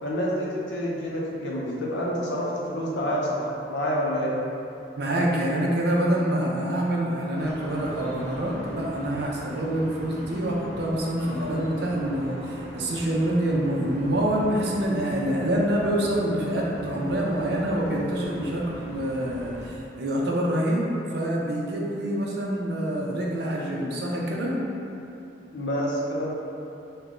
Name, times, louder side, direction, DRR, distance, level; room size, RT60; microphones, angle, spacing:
voice 1, 0.0-4.4 25.5-26.4, equal, 90° left, -4 dB, 0.6 m, -28 dB
voice 2, 5.0-20.8 21.1-24.5, right 1 dB, 65° right, -3 dB, 0.5 m, -26 dB
sound 1, 7.3-19.7, equal, 15° right, 1.0 m, -41 dB
3.3 x 2.2 x 3.7 m, 2.8 s
head